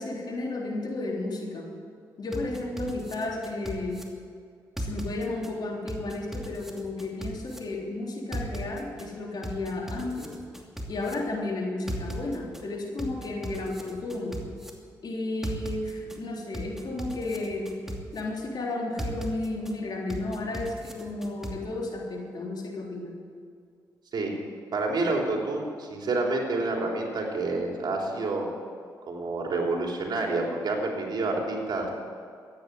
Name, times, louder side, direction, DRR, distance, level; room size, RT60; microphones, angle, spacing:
voice 1, 0.0-1.7 2.2-4.0 4.8-10.4 10.9-14.4 15.0-17.7 18.1-23.2, left 2 dB, 60° left, -1 dB, 3.6 m, -33 dB
sound 1, 2.3-4.0 4.8-5.5 5.9-7.6 8.3-9.1 9.4-11.1 11.9-12.6 13.0-14.7 15.4-16.2 16.5-18.2 19.0-19.7 20.1-21.5, equal, 5° right, 2.7 m, -37 dB
voice 2, 24.7-28.5 29.1-31.9, right 2 dB, 60° right, 0 dB, 3.5 m, -28 dB
14.0 x 9.6 x 9.3 m, 2.3 s
supercardioid pair, 55°, 8 cm